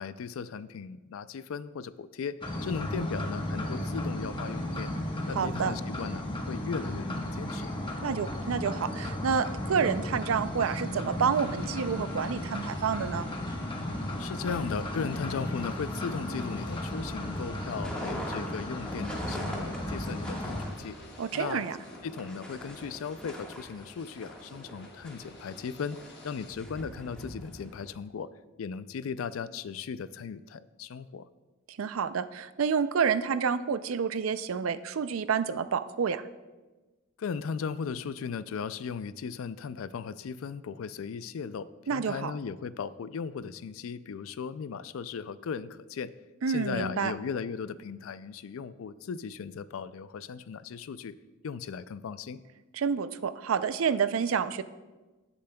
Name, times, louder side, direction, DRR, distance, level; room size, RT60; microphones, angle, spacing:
voice 1, 0.0-2.4 2.6-4.9 5.3-7.7 14.2-21.0 21.3-21.6 22.0-26.0 26.2-28.3 28.6-31.3 37.2-46.1 46.5-51.1 51.4-52.4, left 6 dB, 90° left, 16 dB, 0.4 m, -37 dB
sound 1, 2.4-20.7, left 1 dB, 25° left, 1.1 m, -35 dB
voice 2, 5.3-5.7 8.0-13.3 21.2-21.8 31.7-36.2 41.9-42.3 46.4-47.1 52.7-54.6, right 6 dB, 85° right, 13 dB, 0.4 m, -29 dB
sound 2, 11.3-26.5, left 2 dB, 55° left, 1.1 m, -50 dB
sound 3, 17.6-27.9, equal, 5° left, 1.5 m, -42 dB
17.0 x 7.0 x 2.3 m, 1.2 s
head